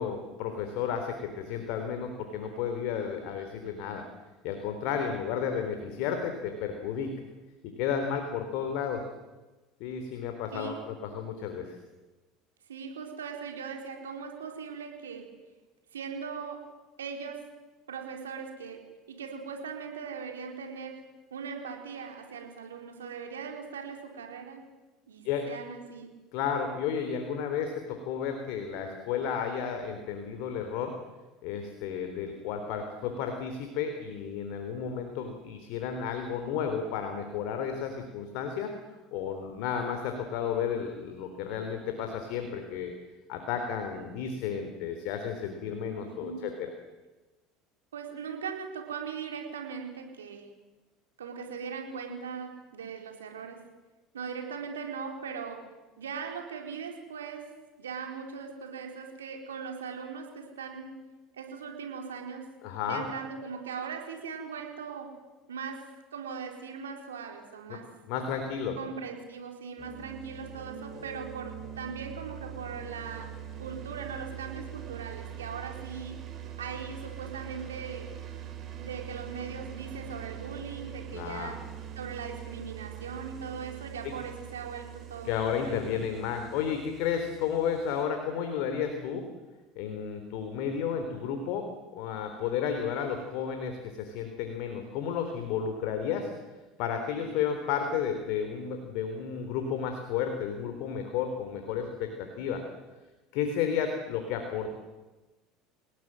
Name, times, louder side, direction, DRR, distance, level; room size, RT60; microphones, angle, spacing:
voice 1, 0.0-4.0 4.4-7.1 7.8-9.0 9.8-11.8 25.2-25.4 26.3-30.9 31.4-38.7 39.1-42.9 43.3-46.7 62.6-63.0 67.7-67.8 68.1-68.8 81.1-81.5 84.0-84.1 85.2-89.2 89.8-96.3 96.8-102.6 103.3-104.7, left 7 dB, 65° left, 6 dB, 3.8 m, -32 dB
voice 2, 10.5-10.8 12.7-15.3 15.9-16.6 17.0-17.4 17.9-18.8 19.1-21.0 21.3-24.6 25.1-26.1 46.0-46.5 47.9-50.5 51.2-53.6 54.1-55.6 56.0-57.4 57.8-61.0 61.3-62.4 62.9-65.1 65.5-65.8 66.1-67.8 68.8-73.3 73.6-76.2 76.6-78.1 78.8-81.6 82.0-86.1, right 6 dB, 85° right, 2 dB, 4.5 m, -39 dB
sound 1, 69.8-88.0, right 9 dB, 45° right, 5.7 m, -43 dB
29.5 x 19.0 x 7.8 m, 1.2 s
hypercardioid pair, 75°, 0 cm